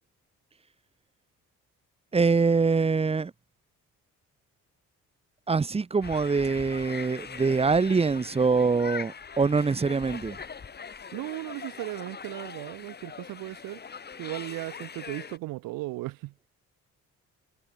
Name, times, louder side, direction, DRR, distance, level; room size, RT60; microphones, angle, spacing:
voice 1, 2.1-3.3 5.5-10.4, right 4 dB, 20° right, 0.6 m, -24 dB
sound 1, 6.0-15.4, left 6 dB, 30° left, 1.0 m, -42 dB
voice 2, 11.1-13.8 14.2-16.3, right 19 dB, 90° right, 1.0 m, -36 dB
cardioid pair, 75°, 33 cm